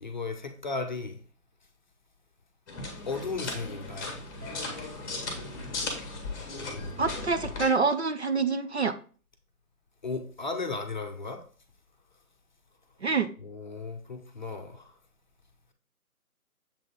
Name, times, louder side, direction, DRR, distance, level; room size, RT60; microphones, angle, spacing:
voice 1, 0.0-1.2 3.1-4.2 10.0-11.4 13.4-14.9, left 3 dB, 30° left, 0.7 m, -35 dB
sound 1, 2.7-7.7, left 3 dB, 15° left, 1.1 m, -36 dB
voice 2, 7.0-8.9 13.0-13.3, right 4 dB, 50° right, 0.5 m, -26 dB
7.3 x 3.8 x 3.6 m
figure-of-eight pair, 145°, 45 cm